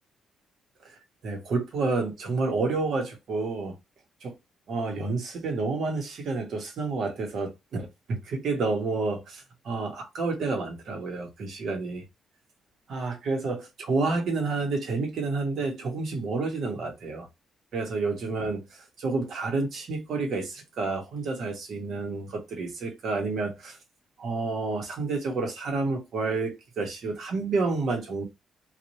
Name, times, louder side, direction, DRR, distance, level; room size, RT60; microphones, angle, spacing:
voice 1, 1.2-3.7 4.2-4.3 4.7-12.0 12.9-17.3 17.7-23.8 24.2-28.2, right 3 dB, 55° right, 1.2 m, -29 dB
3.0 x 2.6 x 2.7 m
cardioid pair, 155°, 0 cm